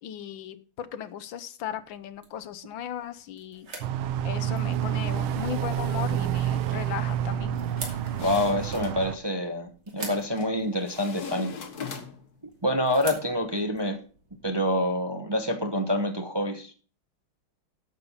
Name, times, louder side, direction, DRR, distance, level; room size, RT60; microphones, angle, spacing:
voice 1, 0.0-3.7 4.2-7.6, left 10 dB, 75° left, 13 dB, 1.5 m, -37 dB
sound 1, 1.6-14.5, right 3 dB, 55° right, 3.4 m, -47 dB
sound 2, 3.8-9.2, right 10 dB, 90° right, 1.7 m, -28 dB
sound 3, 7.8-9.0 10.0-10.5 10.9-12.4, left 6 dB, 50° left, 1.9 m, -40 dB
voice 2, 8.1-11.5 12.6-14.0 14.4-16.7, left 1 dB, 15° right, 5 dB, 1.0 m, -27 dB
11.0 x 7.3 x 5.6 m, 0.39 s
omnidirectional pair, 2.2 m